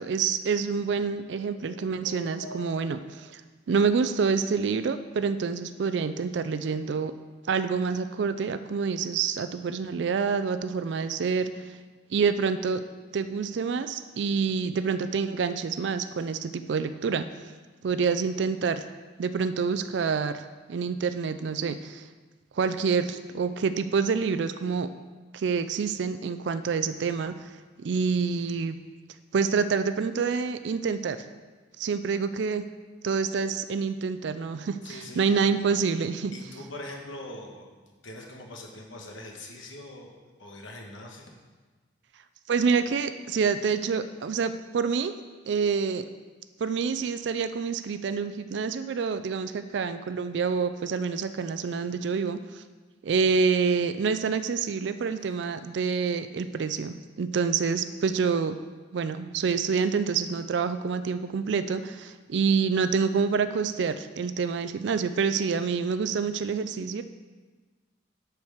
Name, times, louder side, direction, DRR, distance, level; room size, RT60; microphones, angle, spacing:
voice 1, 0.0-3.4 3.7-7.1 7.5-11.5 12.1-12.8 13.1-17.2 17.8-18.8 19.2-20.4 20.7-22.0 22.6-24.9 25.3-27.5 27.8-28.8 29.3-31.2 31.8-32.6 33.0-36.3 42.5-45.1 45.5-46.0 46.6-52.6 53.0-58.6 58.9-67.0, right 5 dB, 65° right, 11 dB, 0.4 m, -27 dB
sound 1, 1.3-3.3, left 3 dB, 65° left, 0.6 m, -45 dB
voice 2, 34.8-35.4 36.3-41.3 55.2-55.6, left 1 dB, 85° left, 1 dB, 1.3 m, -43 dB
8.6 x 4.6 x 6.5 m, 1.3 s
head